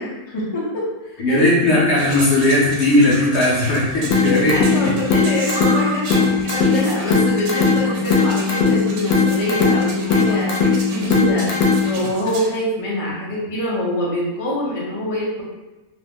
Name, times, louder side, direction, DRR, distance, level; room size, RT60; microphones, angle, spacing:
voice 1, 0.0-1.4 4.5-10.5 10.9-11.5 11.8-15.4, left 1 dB, 35° left, -6 dB, 0.5 m, -25 dB
voice 2, 1.2-4.9 6.3-6.4, left 1 dB, 55° left, -5 dB, 0.9 m, -17 dB
sound 1, 2.0-12.5, right 3 dB, 85° right, 1.1 m, -33 dB
sound 2, 4.1-12.1, left 4 dB, 85° left, 1.1 m, -19 dB
2.8 x 2.0 x 3.4 m, 1.1 s
omnidirectional pair, 1.5 m